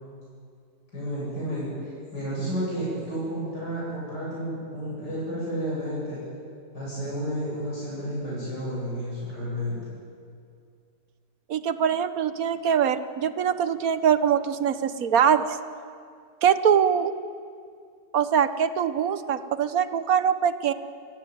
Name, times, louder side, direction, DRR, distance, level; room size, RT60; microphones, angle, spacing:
voice 1, 0.9-6.2 6.7-9.9, equal, 85° left, -7 dB, 8.9 m, -31 dB
voice 2, 11.5-15.6 16.4-17.1 18.1-20.7, right 8 dB, 60° right, 12 dB, 1.3 m, -23 dB
25.5 x 18.0 x 9.4 m, 2.3 s
omnidirectional pair, 1.8 m